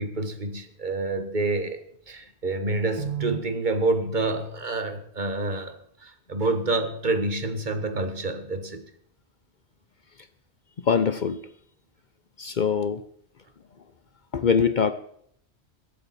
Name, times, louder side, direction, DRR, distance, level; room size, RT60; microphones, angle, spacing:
voice 1, 0.0-8.8, right 2 dB, 45° right, 8 dB, 1.4 m, -28 dB
voice 2, 10.8-11.4 12.4-13.0 14.3-14.9, left 6 dB, 50° left, 12 dB, 0.7 m, -23 dB
22.5 x 8.5 x 4.2 m, 0.66 s
omnidirectional pair, 1.1 m